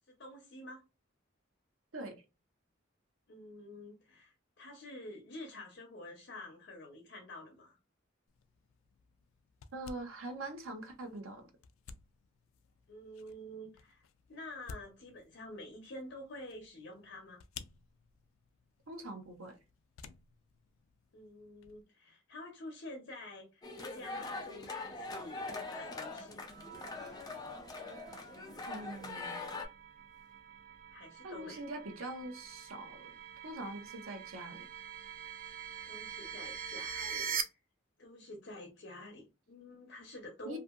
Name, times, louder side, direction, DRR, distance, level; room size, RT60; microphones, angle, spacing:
voice 1, 0.1-0.8 3.3-7.8 12.9-14.0 14.3-17.4 21.1-23.6 23.9-26.5 30.9-31.6 35.9-37.6 38.0-40.6, left 1 dB, 55° left, 0.7 m, -49 dB
sound 1, 8.3-21.8, left 5 dB, 85° left, 0.3 m, -56 dB
voice 2, 9.7-11.5 18.9-19.6 28.7-29.5 31.2-33.2 33.4-34.7 40.4-40.6, right 2 dB, 85° right, 0.7 m, -43 dB
sound 2, 23.6-29.7, left 3 dB, 20° left, 0.4 m, -42 dB
sound 3, 26.5-37.4, right 7 dB, 45° right, 0.4 m, -44 dB
2.7 x 2.5 x 2.4 m
head